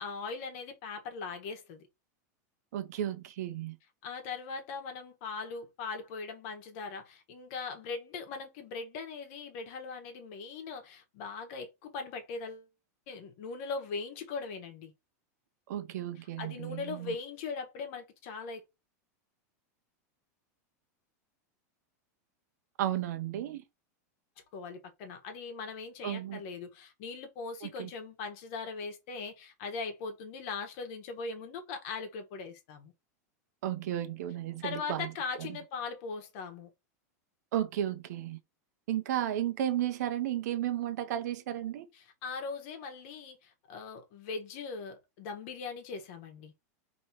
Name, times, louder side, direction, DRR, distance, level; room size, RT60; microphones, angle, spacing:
voice 1, 0.0-1.9 4.0-12.7 13.1-14.9 16.4-18.6 24.5-32.9 34.6-36.7 42.2-46.5, left 4 dB, 50° left, 1.2 m, -40 dB
voice 2, 2.7-3.8 15.7-17.1 22.8-23.6 26.0-26.4 27.6-27.9 33.6-35.1 35.4-35.6 37.5-38.4 38.9-41.9, right 11 dB, 75° right, 0.8 m, -33 dB
3.0 x 2.8 x 4.5 m
supercardioid pair, 150°, 9 cm